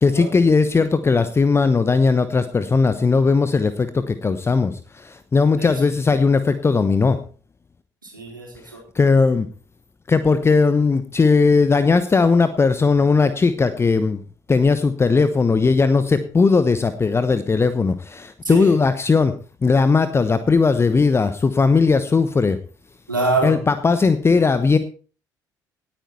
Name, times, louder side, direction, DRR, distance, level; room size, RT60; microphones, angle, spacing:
voice 1, 0.0-7.2 8.9-9.5 10.1-14.2 14.5-19.3 19.6-22.6 23.4-24.8, left 4 dB, 25° left, 12 dB, 1.1 m, -18 dB
voice 2, 8.0-8.8 18.4-18.7 23.1-23.6, right 2 dB, 85° right, 0 dB, 4.0 m, -24 dB
18.5 x 9.0 x 4.3 m, 0.38 s
figure-of-eight pair, 50°, 11 cm